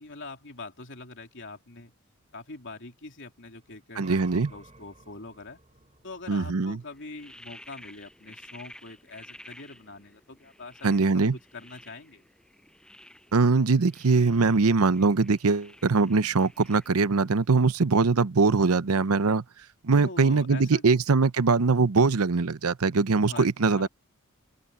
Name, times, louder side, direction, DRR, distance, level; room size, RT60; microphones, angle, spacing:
voice 1, 0.0-1.9 2.3-5.6 6.0-12.2 20.0-21.0 23.3-23.9, left 3 dB, 60° left, 3.2 m, -43 dB
sound 1, 3.6-10.3 13.6-13.7 14.1-18.4, right 2 dB, 30° right, 6.9 m, -56 dB
voice 2, 4.0-4.5 6.3-6.8 10.8-11.4 13.3-19.4 19.8-23.9, right 4 dB, 85° right, 0.8 m, -22 dB
sound 2, 6.8-17.6, left 1 dB, 5° left, 7.1 m, -52 dB
open air
head